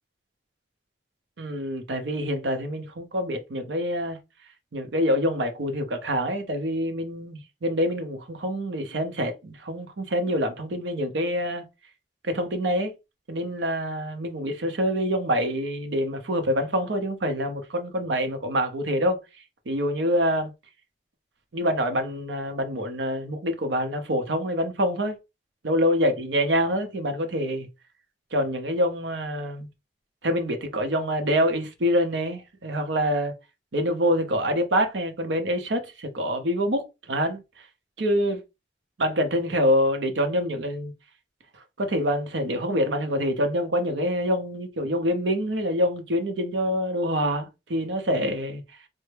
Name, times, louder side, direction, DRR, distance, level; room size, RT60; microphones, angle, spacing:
voice 1, 1.4-4.2 4.7-11.7 12.2-12.9 13.3-19.2 19.7-20.5 21.5-25.2 25.6-27.7 28.3-29.7 30.2-33.3 33.7-37.7 38.0-38.4 39.0-40.9 41.8-48.6, equal, 85° right, 0.7 m, -26 dB
3.2 x 2.1 x 3.3 m
head